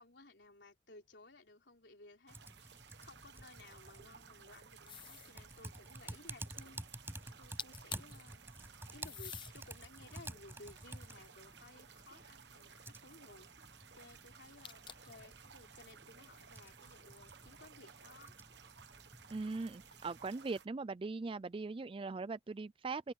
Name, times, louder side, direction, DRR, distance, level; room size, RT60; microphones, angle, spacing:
voice 1, 0.0-6.8 7.4-13.5 13.9-18.3, left 2 dB, 65° left, 4.1 m, -58 dB
Typing, 2.3-20.3, right 1 dB, 10° right, 6.0 m, -52 dB
sound 1, 2.3-20.7, right 7 dB, 65° right, 1.2 m, -58 dB
sound 2, 4.9-5.4 7.3-7.4 7.6-8.2 9.0-9.6 10.2-11.7 14.6-15.2, left 8 dB, 25° left, 0.8 m, -48 dB
voice 2, 19.3-23.1, right 3 dB, 30° right, 0.4 m, -40 dB
open air
head